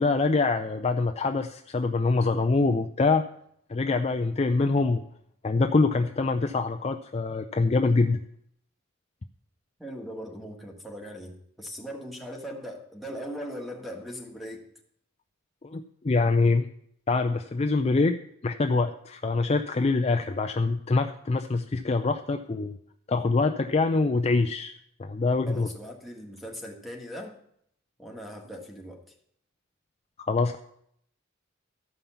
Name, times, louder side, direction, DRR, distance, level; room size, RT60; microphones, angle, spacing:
voice 1, 0.0-3.2 3.7-5.0 5.4-8.2 15.6-16.7 17.1-18.2 18.4-22.7 23.1-24.7 25.0-25.7 30.3-30.6, left 3 dB, 30° left, 6 dB, 0.4 m, -24 dB
voice 2, 9.8-14.6 25.4-27.4 28.0-29.1, equal, ahead, 2 dB, 1.6 m, -39 dB
13.5 x 5.6 x 6.9 m, 0.69 s
head